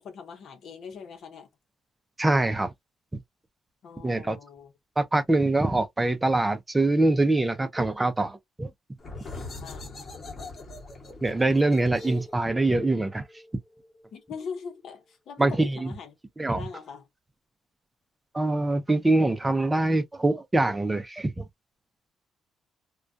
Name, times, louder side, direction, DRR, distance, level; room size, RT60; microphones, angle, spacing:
voice 1, 0.0-1.5 3.8-4.7 9.6-9.9 14.1-16.2 16.6-17.1, left 6 dB, 65° left, 0.8 m, -41 dB
voice 2, 2.2-2.7 3.1-3.2 4.0-4.4 5.0-8.7 11.2-13.2 15.4-15.7 16.4-16.6 18.3-21.4, right 2 dB, 15° right, 0.5 m, -24 dB
sound 1, 9.0-14.4, left 3 dB, 40° left, 1.1 m, -42 dB
2.3 x 2.2 x 2.5 m
cardioid pair, 90°, 0 cm